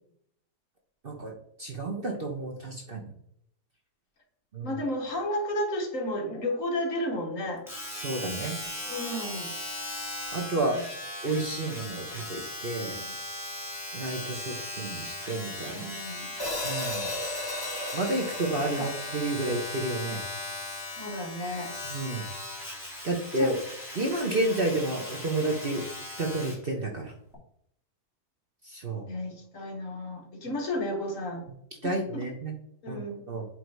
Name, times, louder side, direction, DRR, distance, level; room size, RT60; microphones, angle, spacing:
voice 1, 1.0-3.1 4.5-4.8 8.0-8.6 10.3-10.8 11.2-13.0 13.9-15.9 16.6-17.1 17.9-20.2 21.8-22.3 23.0-23.6 24.0-25.9 26.2-27.1 28.6-29.0 31.8-32.5 32.9-33.4, right 2 dB, 40° right, 1 dB, 1.0 m, -31 dB
voice 2, 4.6-7.7 8.9-9.5 10.6-10.8 12.9-13.2 15.7-16.3 18.7-18.9 20.8-21.7 23.4-23.5 29.1-31.5 31.8-32.2 32.8-33.2, left 1 dB, 55° left, 2 dB, 1.5 m, -33 dB
Domestic sounds home sounds, 7.7-26.6 27.3-27.4, left 2 dB, ahead, 2.1 m, -38 dB
Hi-hat, 16.4-20.6, left 1 dB, 15° left, 1.1 m, -36 dB
8.4 x 3.4 x 4.6 m, 0.71 s
omnidirectional pair, 1.8 m